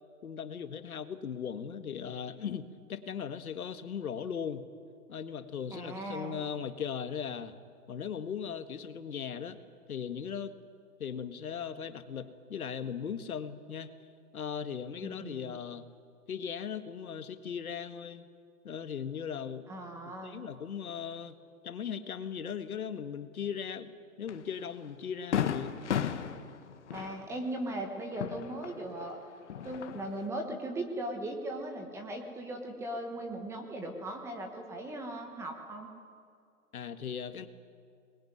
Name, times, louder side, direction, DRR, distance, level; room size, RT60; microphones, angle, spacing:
voice 1, 0.2-4.7 5.1-7.5 7.9-9.6 9.9-10.5 11.0-13.9 14.3-15.8 16.3-18.2 18.6-19.7 20.0-21.4 21.6-23.9 24.2-25.7 36.7-37.5, left 7 dB, 70° left, 9 dB, 1.9 m, -38 dB
voice 2, 5.7-6.4 15.0-15.6 19.7-20.4 26.9-29.2 29.6-35.9, right 1 dB, 5° right, 3 dB, 1.2 m, -38 dB
Fireworks, 24.3-24.4 24.8-24.9 25.3-29.1 29.4-30.3, left 9 dB, 50° left, 1.6 m, -35 dB
24.0 x 21.0 x 9.5 m, 2.3 s
hypercardioid pair, 155°, 45 cm